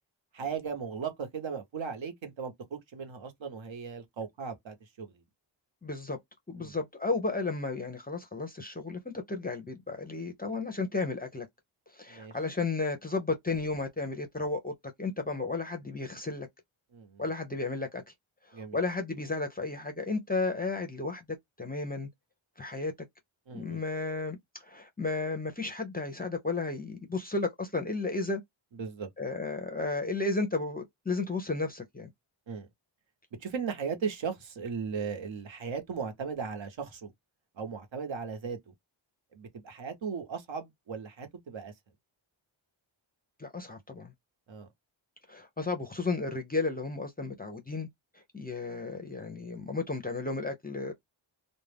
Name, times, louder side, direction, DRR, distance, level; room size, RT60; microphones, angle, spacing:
voice 1, 0.3-5.2 6.6-6.7 12.1-12.4 16.9-17.2 18.5-18.8 23.5-23.8 28.7-29.1 32.5-32.7 33.4-37.1 37.5-38.7 39.3-41.7 44.5-44.7, right 6 dB, 70° right, 0.9 m, -37 dB
voice 2, 5.8-6.2 6.5-11.5 11.9-16.5 17.2-18.0 18.5-22.1 22.6-22.9 23.5-28.4 29.2-32.1 43.4-44.1 45.3-47.9 48.3-50.9, left 3 dB, 20° left, 0.4 m, -33 dB
2.3 x 2.1 x 3.2 m
wide cardioid pair, 175°, 48 cm